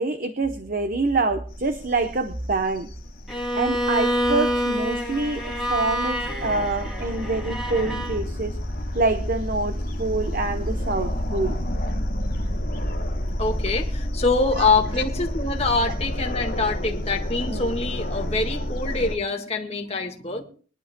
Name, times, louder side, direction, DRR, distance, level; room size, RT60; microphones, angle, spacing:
voice 1, 0.0-2.9 3.5-8.6 8.9-11.6 14.6-14.7 14.9-15.0 17.5-17.8, right 3 dB, 45° right, 8 dB, 0.8 m, -26 dB
sound 1, 1.5-19.2, equal, 50° left, 1.8 m, -30 dB
Bowed string instrument, 3.3-8.2, equal, ahead, 2.4 m, -27 dB
voice 2, 13.4-20.4, left 3 dB, 35° left, 3 dB, 1.6 m, -25 dB
23.0 x 11.0 x 2.2 m, 0.42 s
head